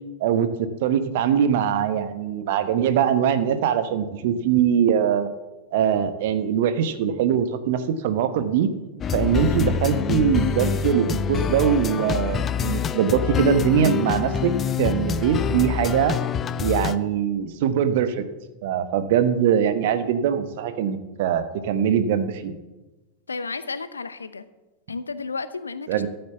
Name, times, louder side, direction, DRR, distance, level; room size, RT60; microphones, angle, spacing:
voice 1, 0.2-5.3 5.7-8.7 9.1-14.5 14.8-16.1 16.6-18.2 18.6-22.5 25.9-26.1, right 8 dB, 50° right, 11 dB, 1.1 m, -22 dB
sound 1, 9.0-17.0, left 7 dB, 25° left, 0.5 m, -25 dB
voice 2, 23.3-24.4 24.9-25.9, left 4 dB, 75° left, 14 dB, 0.7 m, -32 dB
13.0 x 7.9 x 7.0 m, 1.1 s
figure-of-eight pair, 90°, 0 cm